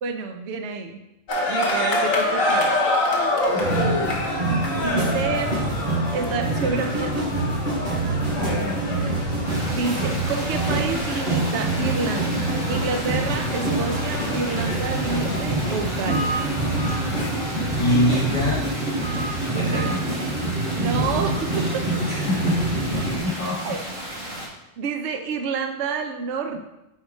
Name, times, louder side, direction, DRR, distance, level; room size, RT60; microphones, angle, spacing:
voice 1, 0.0-1.0 1.5-2.8 3.1-3.7 4.5-5.8 6.1-7.3 9.7-16.4 19.7-19.8 20.7-21.8 23.6-23.8 24.8-26.6, right 5 dB, 65° right, 4 dB, 0.8 m, -29 dB
sound 1, 1.3-18.1, left 2 dB, 85° left, 1.4 m, -28 dB
voice 2, 3.5-4.1 8.3-8.8 17.4-18.6 19.4-20.0 22.0-22.8 23.1-23.7, left 1 dB, 40° left, -6 dB, 1.7 m, -25 dB
sound 2, 3.6-23.2, right 2 dB, 35° right, 2.7 m, -26 dB
sound 3, 9.5-24.5, right 1 dB, 90° right, 2.0 m, -34 dB
4.5 x 4.3 x 5.0 m, 0.90 s
omnidirectional pair, 1.4 m